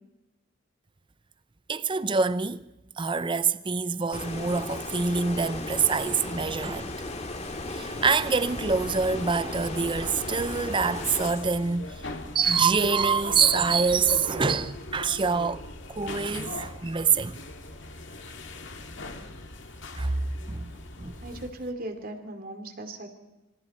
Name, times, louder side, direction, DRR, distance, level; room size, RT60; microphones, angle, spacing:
voice 1, 1.7-2.7 3.0-6.9 7.7-15.6 15.9-17.4 20.0-20.2 20.5-21.1, right 5 dB, 25° right, 0.6 m, -26 dB
Stream, 4.1-11.3, left 2 dB, 35° left, 2.2 m, -36 dB
sound 1, 8.5-21.5, left 2 dB, 60° left, 2.1 m, -40 dB
voice 2, 21.2-23.1, right 1 dB, 45° right, 2.8 m, -37 dB
26.5 x 25.5 x 4.3 m
head